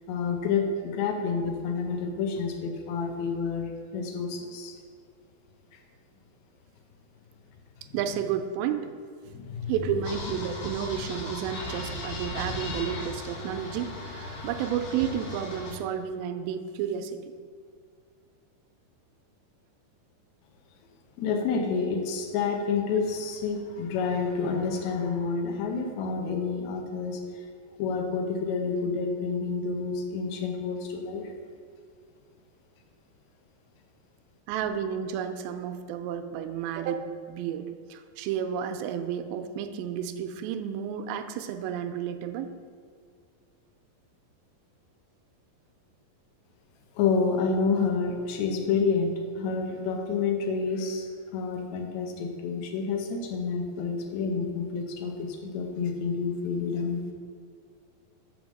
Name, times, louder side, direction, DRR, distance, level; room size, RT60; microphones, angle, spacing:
voice 1, 0.1-4.7 9.3-9.7 21.2-27.2 27.8-31.3 46.9-51.1 51.3-57.0, left 5 dB, 90° left, 3 dB, 1.6 m, -29 dB
voice 2, 7.9-8.9 9.7-17.3 34.5-37.7 37.9-42.5, right 8 dB, 85° right, 8 dB, 2.4 m, -31 dB
sound 1, 10.0-15.7, left 2 dB, 65° left, 1.8 m, -37 dB
6.3 x 5.2 x 6.3 m, 2.1 s
omnidirectional pair, 4.3 m